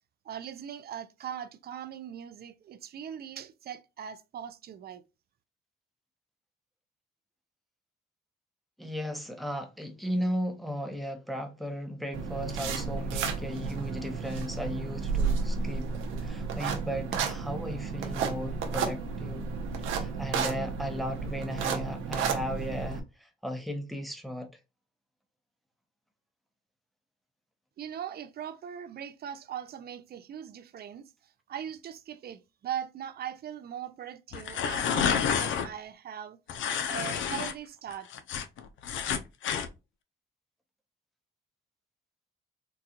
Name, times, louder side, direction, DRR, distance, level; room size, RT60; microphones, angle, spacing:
voice 1, 0.3-5.0 27.8-31.1 31.5-36.4 36.9-38.1, right 9 dB, 50° right, 0.5 m, -40 dB
voice 2, 8.8-15.9 16.2-19.5 19.9-24.5, equal, ahead, 0.8 m, -36 dB
sound 1, 12.1-23.0, right 5 dB, 90° right, 0.7 m, -32 dB
sound 2, 34.3-35.7 36.5-37.5 37.9-39.7, left 7 dB, 75° left, 0.5 m, -29 dB
3.9 x 2.3 x 2.8 m
cardioid pair, 90°, 20 cm